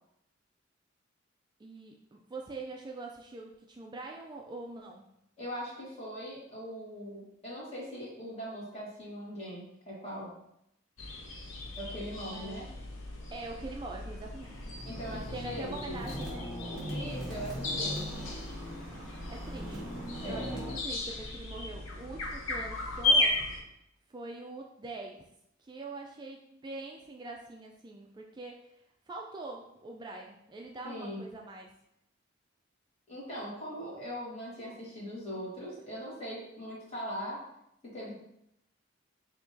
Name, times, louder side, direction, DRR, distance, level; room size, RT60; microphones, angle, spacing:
voice 1, 1.6-5.0 12.3-12.6 13.3-14.7 15.1-17.0 19.3-23.4 24.1-25.3 25.6-28.8 29.1-31.7, right 2 dB, 20° right, 1 dB, 0.3 m, -43 dB
voice 2, 5.4-10.3 11.8-12.7 14.8-16.0 16.9-18.2 20.2-20.5 30.8-31.3 33.1-37.4 37.9-38.1, equal, 35° left, -6 dB, 1.6 m, -40 dB
sound 1, 11.0-23.6, left 2 dB, 80° left, 0.8 m, -35 dB
sound 2, 14.4-20.7, equal, 5° right, 1.3 m, -40 dB
5.7 x 2.8 x 2.7 m, 0.79 s
head